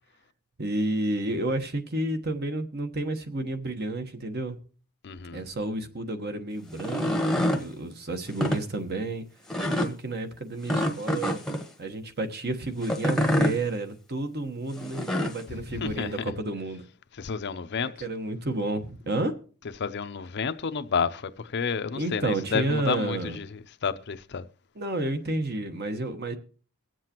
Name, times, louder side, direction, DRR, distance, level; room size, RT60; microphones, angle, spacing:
voice 1, 0.6-4.6 5.3-9.2 9.6-11.4 11.8-16.8 17.8-19.3 21.9-23.4 24.7-26.4, right 2 dB, 45° right, 1.2 m, -31 dB
voice 2, 5.0-5.4 15.5-16.1 17.2-17.9 19.8-23.5 23.8-24.5, left 6 dB, 50° left, 0.6 m, -30 dB
sound 1, 6.7-7.6 8.3-8.6 9.5-9.9 10.7-11.6 12.8-13.6 14.8-15.4, equal, ahead, 1.0 m, -26 dB
22.5 x 7.6 x 3.0 m
head